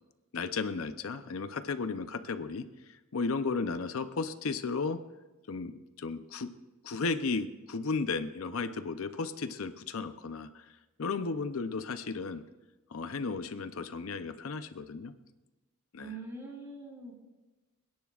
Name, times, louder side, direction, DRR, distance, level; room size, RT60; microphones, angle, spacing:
voice 1, 0.3-2.7 3.1-5.0 5.5-5.7 6.0-6.5 6.8-10.7 11.0-12.4 12.9-15.1 15.9-16.2, left 4 dB, 70° left, 10 dB, 0.6 m, -34 dB
voice 2, 16.0-17.1, right 3 dB, 15° right, -2 dB, 2.6 m, -43 dB
27.5 x 10.5 x 2.4 m, 1.1 s
head